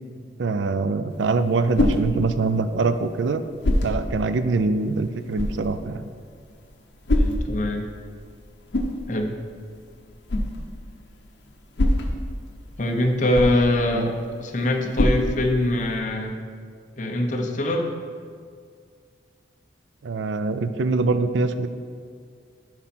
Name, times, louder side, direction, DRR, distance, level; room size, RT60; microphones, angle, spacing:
voice 1, 0.4-3.4 3.8-6.0 13.9-14.1 15.1-15.2 20.0-21.7, right 3 dB, 85° right, 11 dB, 0.4 m, -24 dB
sound 1, 1.1-16.0, left 1 dB, 75° left, 0.8 m, -28 dB
voice 2, 7.1-7.9 9.1-9.3 12.8-14.1 14.4-16.4 17.0-18.0, left 1 dB, 45° left, 3 dB, 0.8 m, -23 dB
11.5 x 4.2 x 4.3 m, 2.1 s
head